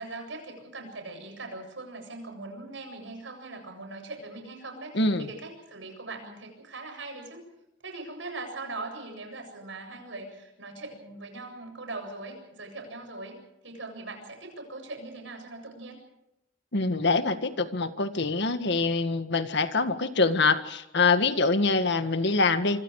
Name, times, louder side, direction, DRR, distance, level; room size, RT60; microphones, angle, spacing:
voice 1, 0.0-7.4 7.8-13.4 13.6-16.0, right 2 dB, 75° right, 5 dB, 7.8 m, -40 dB
voice 2, 4.9-5.3 16.7-22.8, left 3 dB, 65° left, 9 dB, 1.7 m, -25 dB
26.5 x 25.0 x 4.9 m, 0.88 s
head